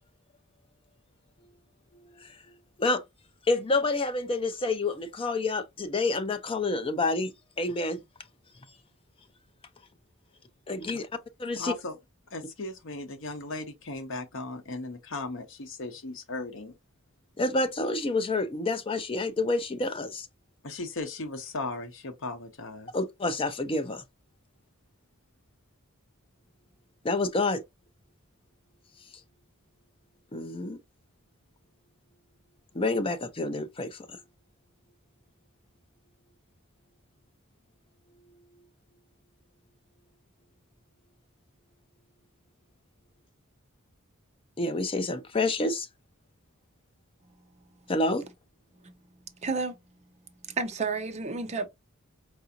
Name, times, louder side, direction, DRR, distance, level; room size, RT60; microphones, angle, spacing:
voice 1, 3.5-7.3 7.6-8.0 10.7-11.1 11.4-11.7 17.4-20.3 22.9-24.0 27.0-27.6 30.3-30.8 32.7-34.2 44.6-45.9 47.9-48.2, left 2 dB, 25° left, 0.5 m, -28 dB
voice 2, 11.6-12.0 12.3-16.7 20.6-22.9, left 2 dB, 60° left, 0.8 m, -37 dB
voice 3, 49.4-49.8 50.5-51.7, right 4 dB, 30° right, 0.6 m, -31 dB
4.7 x 2.5 x 2.7 m
head